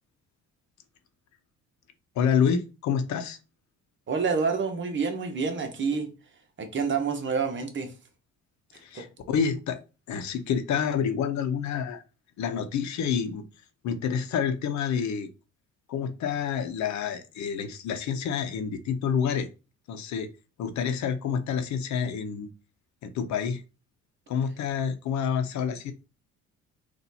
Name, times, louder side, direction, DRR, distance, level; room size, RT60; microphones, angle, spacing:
voice 1, 2.1-3.4 8.8-9.8 10.1-12.0 12.4-13.4 13.8-15.3 15.9-19.5 19.9-20.3 20.6-22.5 23.0-23.6 24.3-25.9, left 7 dB, 70° left, 0.8 m, -28 dB
voice 2, 4.1-6.1 6.6-7.9 8.7-9.1, right 5 dB, 40° right, 1.2 m, -28 dB
4.2 x 2.6 x 4.1 m
cardioid pair, 95°, 30 cm